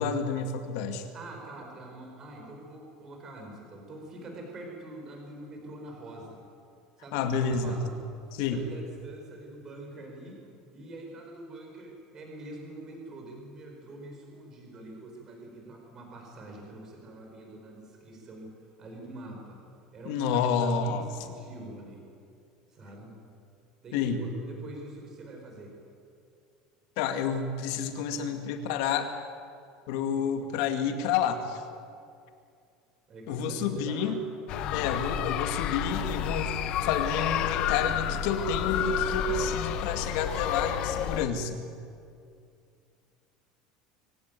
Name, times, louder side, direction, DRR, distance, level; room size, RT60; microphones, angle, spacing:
voice 1, 0.0-1.1 7.1-7.8 8.4-8.7 20.1-21.1 23.9-24.2 27.0-29.1 29.9-31.6 33.3-34.3 34.7-41.6, left 6 dB, 65° left, 7 dB, 2.2 m, -29 dB
voice 2, 1.1-6.4 7.0-7.9 8.3-18.5 18.8-19.6 19.9-22.0 22.7-23.1 23.8-25.8 33.1-34.3 34.5-34.9, right 1 dB, 25° right, 1 dB, 4.9 m, -45 dB
sound 1, 34.5-41.2, left 9 dB, 40° left, 0.9 m, -30 dB
24.0 x 16.5 x 9.3 m, 2.4 s
cardioid pair, 180°, 2 cm